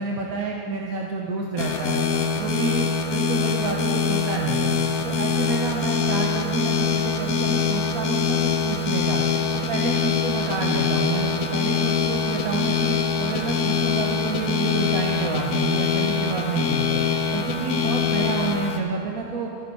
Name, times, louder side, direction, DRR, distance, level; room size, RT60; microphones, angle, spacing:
voice 1, 0.0-2.0 2.4-4.8 5.0-9.2 9.7-17.0 17.3-19.5, right 4 dB, 75° right, 0 dB, 1.3 m, -29 dB
sound 1, 1.6-18.8, left 5 dB, 80° left, 1.3 m, -24 dB
14.0 x 11.0 x 4.6 m, 2.6 s
omnidirectional pair, 1.6 m